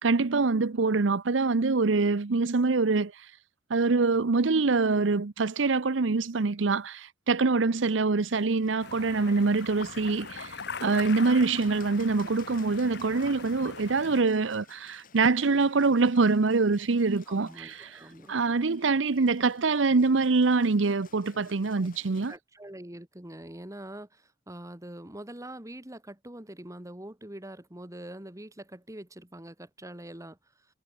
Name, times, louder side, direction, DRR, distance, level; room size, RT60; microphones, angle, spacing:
voice 1, 0.0-3.3 3.7-18.0 18.3-22.3, right 4 dB, 80° right, 0.8 m, -25 dB
Bird, 8.2-22.4, left 5 dB, 50° left, 5.2 m, -57 dB
sound 1, 8.8-14.2, left 4 dB, 65° left, 4.4 m, -41 dB
voice 2, 17.3-18.6 21.8-30.7, right 1 dB, 15° right, 2.2 m, -44 dB
head